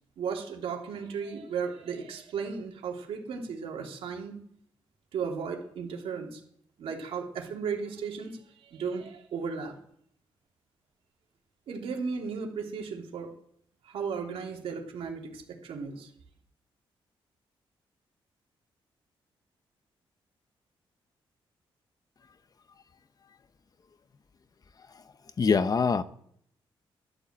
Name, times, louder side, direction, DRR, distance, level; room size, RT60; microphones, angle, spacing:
voice 1, 0.2-4.4 5.1-6.4 6.8-9.7 11.7-13.3 13.8-16.1, right 5 dB, 85° right, 3.1 m, -35 dB
voice 2, 25.4-26.0, left 5 dB, 40° left, 0.9 m, -23 dB
12.5 x 11.5 x 7.4 m
cardioid pair, 100°, 10 cm